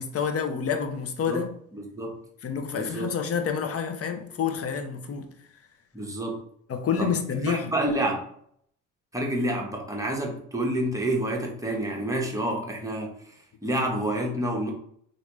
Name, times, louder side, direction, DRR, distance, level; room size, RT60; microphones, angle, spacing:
voice 1, 0.0-1.5 2.4-5.3 6.7-7.7, left 7 dB, 40° left, 0.6 m, -28 dB
voice 2, 1.7-2.2 2.7-3.1 5.9-6.4 7.0-7.1 7.4-8.3 9.1-14.7, right 1 dB, 10° right, 0.9 m, -28 dB
3.2 x 2.6 x 3.0 m
supercardioid pair, 75°, 38 cm